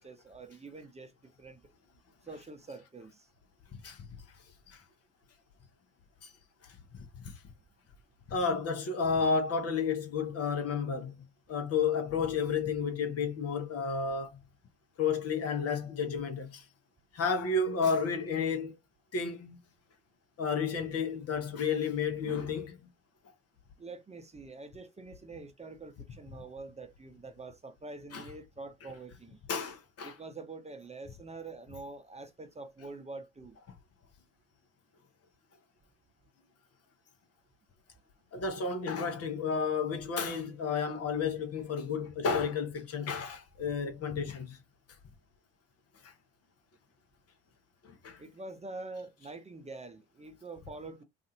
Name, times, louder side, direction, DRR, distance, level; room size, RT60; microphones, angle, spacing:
voice 1, 0.0-1.6 2.2-3.3 23.8-29.4 30.0-33.6 48.2-51.0, right 3 dB, 20° right, 0.7 m, -46 dB
voice 2, 3.7-4.0 4.7-4.8 6.2-6.3 6.9-7.3 8.3-11.1 11.5-14.4 15.0-16.6 17.1-18.7 19.1-19.6 20.4-22.8 28.1-28.2 29.5-30.1 38.3-44.6 46.0-46.1 47.8-48.2, left 5 dB, 50° left, 0.9 m, -32 dB
2.6 x 2.4 x 2.6 m
hypercardioid pair, 45°, 32 cm